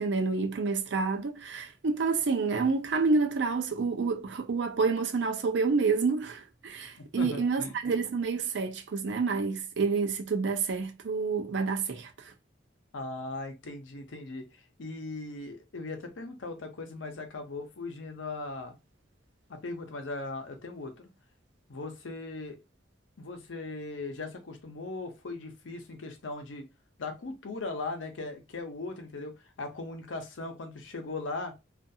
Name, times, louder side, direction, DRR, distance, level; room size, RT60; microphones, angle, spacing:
voice 1, 0.0-12.3, right 4 dB, 65° right, 0.5 m, -28 dB
voice 2, 7.0-7.7 12.9-14.5 14.8-18.8 19.5-21.1 21.7-22.6 23.2-26.6 27.0-29.3 29.6-31.5, left 3 dB, 80° left, 0.7 m, -38 dB
2.4 x 2.3 x 2.6 m
head